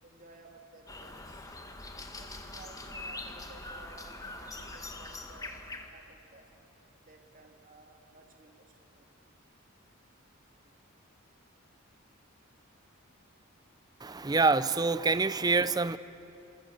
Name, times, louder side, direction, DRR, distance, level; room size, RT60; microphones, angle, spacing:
voice 1, 0.0-1.5 2.1-6.5 7.0-9.1 10.6-10.8, right 2 dB, 40° right, 3.0 m, -56 dB
sound 1, 0.9-5.9, left 2 dB, 15° left, 1.7 m, -43 dB
voice 2, 14.0-16.0, right 3 dB, 20° right, 0.6 m, -26 dB
27.0 x 26.5 x 8.1 m
head